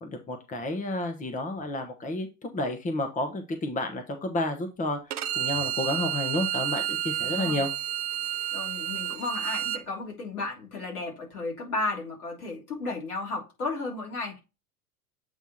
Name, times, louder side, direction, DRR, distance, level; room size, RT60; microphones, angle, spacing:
voice 1, 0.0-5.0 5.3-7.7, left 2 dB, 15° left, 1.2 m, -31 dB
Bowed string instrument, 5.1-9.8, right 12 dB, 75° right, 0.7 m, -30 dB
voice 2, 7.2-7.6 8.5-14.4, left 3 dB, 70° left, 3.6 m, -34 dB
8.1 x 3.5 x 4.3 m
figure-of-eight pair, 80°, 45 cm